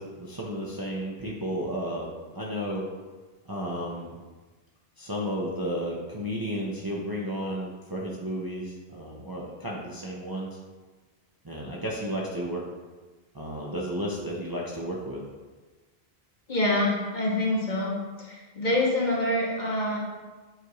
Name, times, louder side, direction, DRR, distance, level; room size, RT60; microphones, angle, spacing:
voice 1, 0.0-2.9 3.4-4.2 5.0-10.6 11.4-12.6 13.3-15.2, equal, 25° right, -4 dB, 0.7 m, -33 dB
voice 2, 16.5-20.0, left 1 dB, 45° left, -4 dB, 1.4 m, -26 dB
7.8 x 2.7 x 4.7 m, 1.3 s
omnidirectional pair, 1.1 m